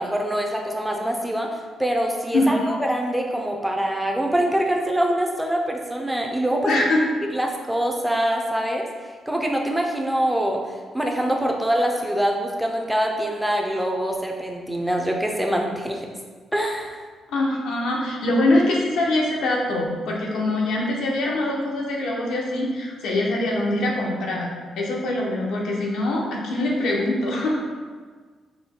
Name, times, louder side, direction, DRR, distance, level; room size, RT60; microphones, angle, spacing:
voice 1, 0.0-1.5 1.8-6.8 7.3-8.9 9.3-10.6 10.9-16.1 16.5-17.0, right 1 dB, 5° right, 1 dB, 0.4 m, -24 dB
voice 2, 2.3-2.8 6.6-7.0 17.3-27.6, left 1 dB, 85° left, -2 dB, 0.8 m, -23 dB
4.9 x 2.2 x 3.6 m, 1.5 s
cardioid pair, 170°, 0 cm